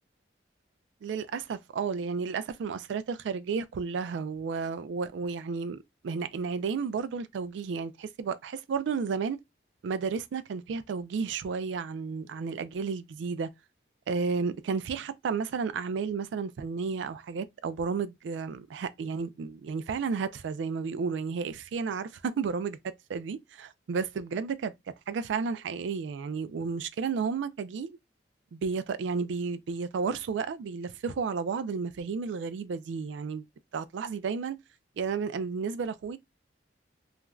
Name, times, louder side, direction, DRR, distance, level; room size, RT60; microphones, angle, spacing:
voice 1, 1.0-9.4 9.8-13.5 14.1-22.8 23.1-24.7 25.1-28.0 28.5-33.5 33.7-34.6 35.0-36.2, right 5 dB, 80° right, 0.3 m, -32 dB
3.1 x 2.4 x 2.2 m
head